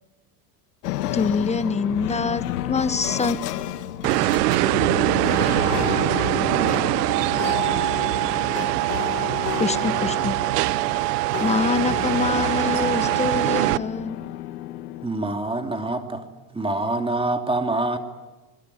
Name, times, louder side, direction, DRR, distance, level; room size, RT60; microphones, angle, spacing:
sound 1, 0.8-15.1, left 13 dB, 90° left, 1.7 m, -31 dB
voice 1, 1.1-3.4 9.6-10.4 11.4-14.2, left 4 dB, 15° left, 13 dB, 1.3 m, -25 dB
sound 2, 4.0-13.8, right 18 dB, 90° right, 0.9 m, -23 dB
voice 2, 5.8-8.8, left 8 dB, 55° left, 3 dB, 4.3 m, -38 dB
voice 3, 15.0-16.2 16.5-18.0, right 2 dB, 10° right, 5 dB, 2.9 m, -25 dB
27.5 x 21.0 x 9.9 m, 1.1 s
supercardioid pair, 115°, 45 cm